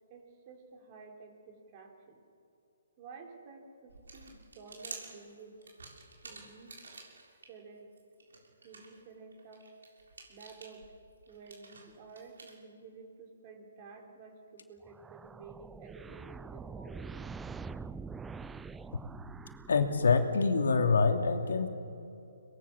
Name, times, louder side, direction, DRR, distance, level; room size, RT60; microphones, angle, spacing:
voice 1, 0.1-2.2 3.0-5.6 6.2-6.8 7.3-7.9 8.6-9.7 10.3-11.0 11.3-17.2, right 4 dB, 30° right, 2 dB, 4.5 m, -52 dB
sound 1, 3.9-7.5 7.9-12.6, right 3 dB, 80° right, 6.7 m, -50 dB
sound 2, 14.8-20.3, right 4 dB, 5° right, 0.5 m, -45 dB
voice 2, 19.7-21.7, left 4 dB, 75° left, 5 dB, 2.8 m, -26 dB
24.0 x 21.0 x 7.3 m, 2.7 s
hypercardioid pair, 155°, 0 cm